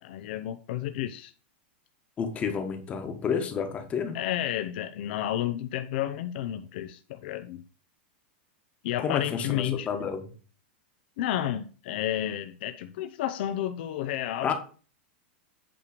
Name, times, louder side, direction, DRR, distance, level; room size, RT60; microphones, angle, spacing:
voice 1, 0.0-1.3 4.1-7.6 8.8-9.9 11.2-14.5, left 12 dB, 60° left, 8 dB, 0.6 m, -31 dB
voice 2, 2.2-4.2 9.0-10.3 14.4-14.5, left 6 dB, 20° left, 6 dB, 1.3 m, -30 dB
8.6 x 3.2 x 6.6 m, 0.39 s
supercardioid pair, 150°, 6 cm